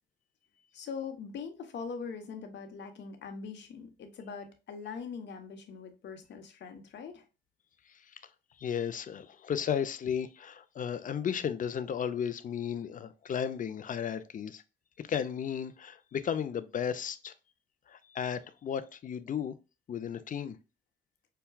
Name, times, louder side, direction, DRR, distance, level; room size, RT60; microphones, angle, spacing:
voice 1, 0.7-7.2, left 5 dB, 65° left, 0.9 m, -42 dB
voice 2, 8.6-14.6 15.0-17.3 17.9-19.5 19.9-20.6, left 8 dB, 40° left, 0.5 m, -34 dB
5.7 x 2.2 x 2.2 m
cardioid pair, 90°, 20 cm